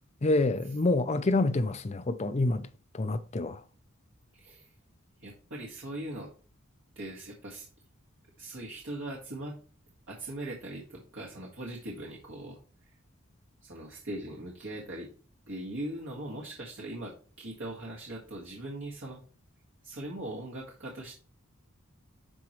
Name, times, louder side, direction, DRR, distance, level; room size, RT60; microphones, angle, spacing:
voice 1, 0.2-2.7 2.9-3.6, left 2 dB, 30° left, 0.5 m, -27 dB
voice 2, 4.3-4.7 5.2-6.3 7.0-7.7 8.4-9.6 10.1-13.0 13.6-15.1 15.5-19.2 19.8-21.1, right 1 dB, 65° right, 1.8 m, -40 dB
11.5 x 4.5 x 3.1 m
head